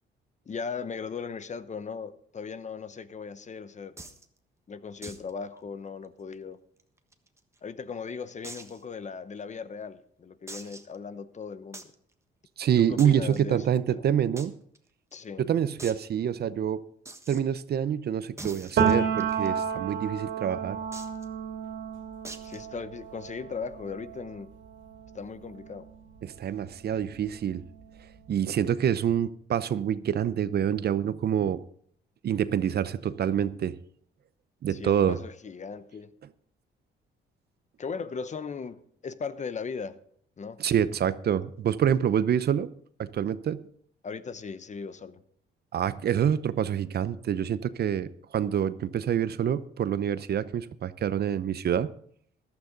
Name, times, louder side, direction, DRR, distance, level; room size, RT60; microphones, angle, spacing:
voice 1, 0.5-3.9 4.7-6.6 7.6-11.9 12.8-14.1 15.1-15.4 22.4-24.5 25.1-25.9 34.7-36.1 37.8-38.8 39.0-40.0 40.4-40.6 44.0-45.2, left 5 dB, 35° left, 13 dB, 0.9 m, -38 dB
sound 1, 4.0-4.2 5.0-5.3 5.6-5.7 6.0-6.1 6.8-7.6 8.4-8.8 9.4-9.5 10.5-11.0 11.7-11.9 13.0-13.4 14.4-14.5 14.7-14.8 15.1-15.2 15.8-16.0 17.0-17.4 18.4-19.5 20.9-21.2 22.2-22.6, right 2 dB, 15° right, 1.3 m, -43 dB
voice 2, 12.6-14.5 15.4-16.8 17.3-20.8 26.2-27.6 28.3-31.6 32.2-33.8 34.6-35.2 40.6-42.7 43.0-43.6 45.7-51.9, right 9 dB, 55° right, 15 dB, 0.7 m, -26 dB
Piano, 18.8-26.4 26.7-28.3, right 6 dB, 70° right, 2.8 m, -32 dB
14.5 x 12.0 x 3.9 m, 0.63 s
cardioid pair, 90°, 20 cm